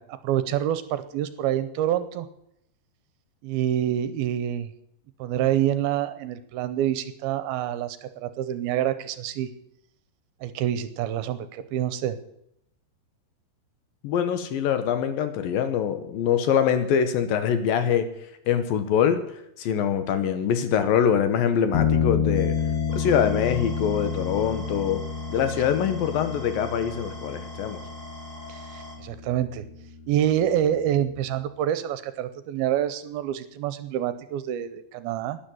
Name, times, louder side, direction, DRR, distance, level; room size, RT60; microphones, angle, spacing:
voice 1, 0.0-2.3 3.4-4.7 5.2-9.5 10.4-12.2 28.5-29.6 30.1-35.4, right 11 dB, 80° right, 13 dB, 2.5 m, -27 dB
voice 2, 14.0-18.1 18.5-22.6 22.9-25.0 25.3-27.8, left 8 dB, 70° left, 10 dB, 2.5 m, -24 dB
sound 1, 21.7-31.2, left 6 dB, 90° left, 1.4 m, -30 dB
sound 2, 22.3-29.0, left 1 dB, 15° left, 1.6 m, -43 dB
12.0 x 10.5 x 9.2 m, 0.78 s
omnidirectional pair, 4.7 m